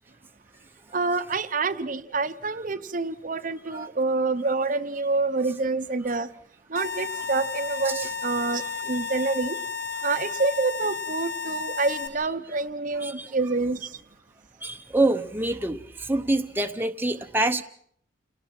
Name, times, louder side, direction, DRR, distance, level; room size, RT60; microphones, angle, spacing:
voice 1, 0.9-6.3 6.7-9.6 10.0-14.0, right 3 dB, 45° right, 0.9 m, -27 dB
sound 1, 6.8-12.1, left 6 dB, 65° left, 5.2 m, -33 dB
voice 2, 13.0-13.3 14.6-17.6, right 2 dB, 10° right, 0.8 m, -26 dB
29.0 x 19.0 x 6.0 m
head